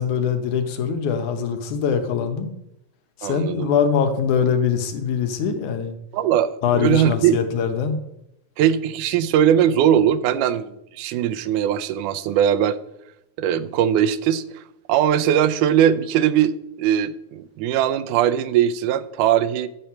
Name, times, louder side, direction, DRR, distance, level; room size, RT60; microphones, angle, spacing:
voice 1, 0.0-2.5 3.2-5.9 6.6-8.0, left 7 dB, 75° left, 2.5 m, -22 dB
voice 2, 3.2-3.7 6.1-7.4 8.6-12.8 13.4-14.4 14.9-19.7, right 10 dB, 85° right, 2.1 m, -20 dB
10.5 x 7.7 x 5.7 m
omnidirectional pair, 3.5 m